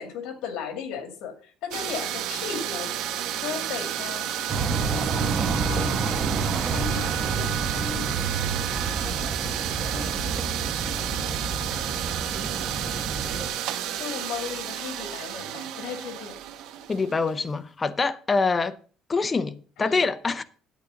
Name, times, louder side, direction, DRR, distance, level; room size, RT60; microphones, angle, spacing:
voice 1, 0.0-1.3 1.6-2.9 3.4-4.6 4.9-5.2 5.7-6.2 6.7-8.2 9.0-9.6 9.9-10.5 10.8-11.3 12.3-13.1 14.0-16.4 19.8-20.0, left 7 dB, 75° left, 2.3 m, -37 dB
sound 1, 1.7-17.4, right 11 dB, 85° right, 1.1 m, -31 dB
sound 2, 4.5-13.5, right 4 dB, 35° right, 1.2 m, -29 dB
voice 2, 16.9-18.8 19.1-20.4, left 4 dB, 20° left, 0.6 m, -25 dB
9.3 x 8.5 x 5.1 m
cardioid pair, 155°, 0 cm